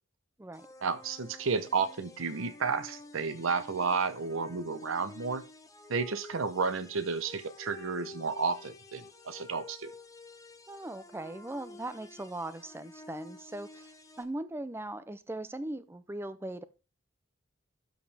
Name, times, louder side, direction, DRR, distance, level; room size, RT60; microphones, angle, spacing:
sound 1, 0.5-14.2, left 2 dB, 15° left, 0.8 m, -51 dB
voice 1, 0.8-5.4 5.9-9.9, right 5 dB, 75° right, 0.8 m, -32 dB
voice 2, 10.7-13.9 14.2-16.6, right 1 dB, 10° right, 0.5 m, -39 dB
12.5 x 5.1 x 3.4 m
head